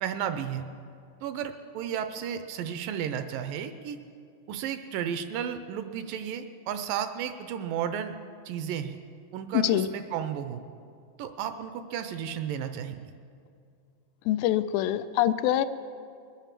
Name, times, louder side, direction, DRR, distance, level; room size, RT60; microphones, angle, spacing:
voice 1, 0.0-0.6 1.2-4.0 4.5-8.1 8.5-9.0 9.3-10.6 11.2-13.0, right 9 dB, 80° right, 9 dB, 2.2 m, -33 dB
voice 2, 9.5-9.9 14.3-15.7, left 12 dB, 80° left, 12 dB, 2.2 m, -24 dB
21.0 x 9.1 x 7.3 m, 2.4 s
omnidirectional pair, 4.2 m